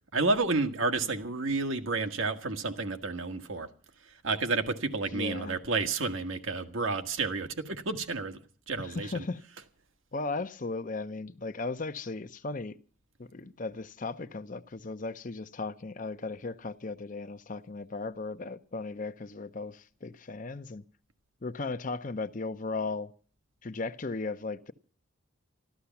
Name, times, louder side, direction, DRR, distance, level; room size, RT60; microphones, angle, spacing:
voice 1, 0.1-3.7 4.2-8.4 8.7-9.2, right 3 dB, 75° right, 1.5 m, -30 dB
voice 2, 5.1-5.6 8.8-9.4 10.1-12.8 13.2-20.8 21.4-23.1 23.6-24.7, left 3 dB, 40° left, 0.6 m, -36 dB
13.0 x 13.0 x 7.0 m
head